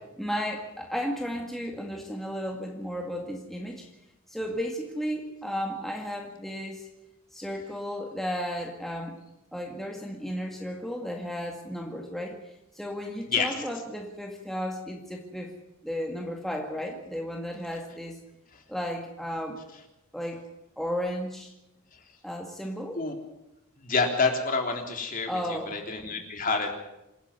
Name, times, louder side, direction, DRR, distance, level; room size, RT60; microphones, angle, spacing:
voice 1, 0.2-3.9 4.3-6.9 7.3-9.2 9.5-15.5 15.8-18.2 18.7-19.6 20.1-20.4 20.8-21.5 22.2-23.0 25.3-25.8, equal, ahead, 0 dB, 2.0 m, -34 dB
voice 2, 23.8-26.7, left 4 dB, 40° left, 3 dB, 3.5 m, -28 dB
27.0 x 10.0 x 9.6 m, 0.92 s
head